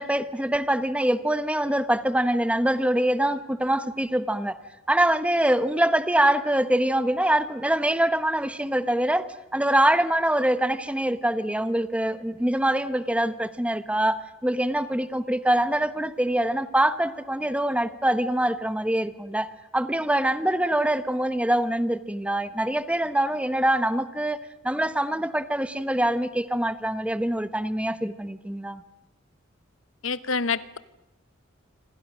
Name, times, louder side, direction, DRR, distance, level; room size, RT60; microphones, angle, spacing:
voice 1, 0.0-4.6 4.9-19.5 19.7-24.4 24.6-28.8, right 1 dB, 5° right, 1.0 m, -24 dB
voice 2, 30.0-30.8, left 5 dB, 85° left, 1.0 m, -27 dB
26.5 x 26.5 x 6.3 m
head